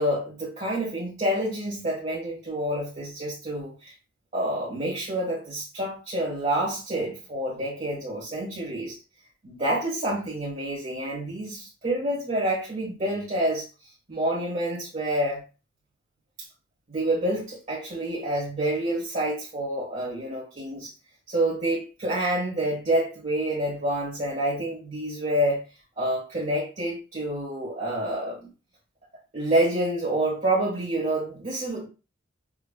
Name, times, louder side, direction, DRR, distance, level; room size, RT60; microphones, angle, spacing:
voice 1, 0.0-3.9 4.3-8.9 9.4-13.6 14.1-15.4 16.9-20.9 21.3-25.7 26.0-28.5 29.3-31.9, right 1 dB, 40° right, -6 dB, 1.3 m, -28 dB
5.1 x 2.3 x 2.2 m, 0.31 s
head